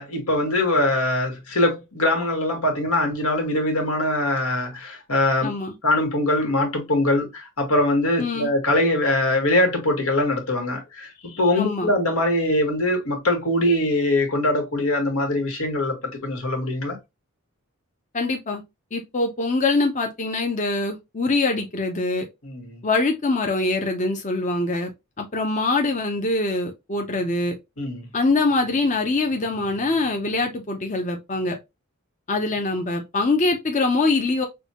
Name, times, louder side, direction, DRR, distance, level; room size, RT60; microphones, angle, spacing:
voice 1, 0.0-5.5 5.8-17.0 22.4-22.8 27.8-28.1, left 1 dB, 85° left, 1.6 m, -22 dB
voice 2, 5.4-5.7 8.2-8.5 11.6-11.9 18.1-18.6 18.9-22.3 22.8-24.9 25.2-27.6 28.1-31.6 32.3-34.5, left 3 dB, 35° left, 0.7 m, -23 dB
6.0 x 2.3 x 2.9 m
head